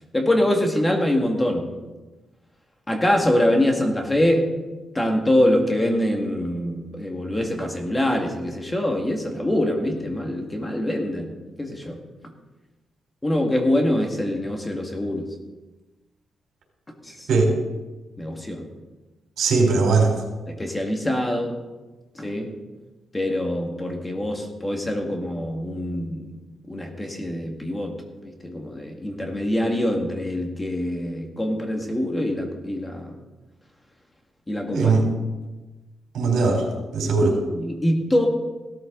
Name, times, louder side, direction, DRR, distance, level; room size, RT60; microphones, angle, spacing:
voice 1, 0.1-1.7 2.9-4.5 4.9-11.3 11.6-12.0 13.2-15.3 17.0-17.3 18.2-18.6 20.5-21.6 22.2-22.5 23.1-26.3 26.7-27.9 28.2-33.1 34.5-34.9 37.0-38.3, left 1 dB, 15° left, 2 dB, 2.0 m, -24 dB
voice 2, 19.4-20.1 34.7-35.0 36.1-36.6 36.9-37.3, right 4 dB, 80° right, 1 dB, 3.8 m, -19 dB
17.0 x 13.0 x 3.9 m, 1.2 s
cardioid pair, 130°, 0 cm